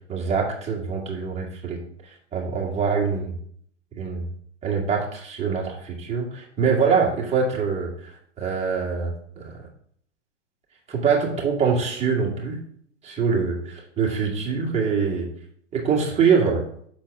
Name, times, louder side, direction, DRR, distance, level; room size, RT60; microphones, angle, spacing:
voice 1, 0.1-1.8 2.3-3.3 4.0-4.2 4.6-7.9 8.4-9.5 10.9-12.6 13.0-13.6 14.0-15.3 15.7-16.6, right 5 dB, 15° right, -1 dB, 1.8 m, -24 dB
6.1 x 4.5 x 6.4 m, 0.63 s
hypercardioid pair, 135°, 36 cm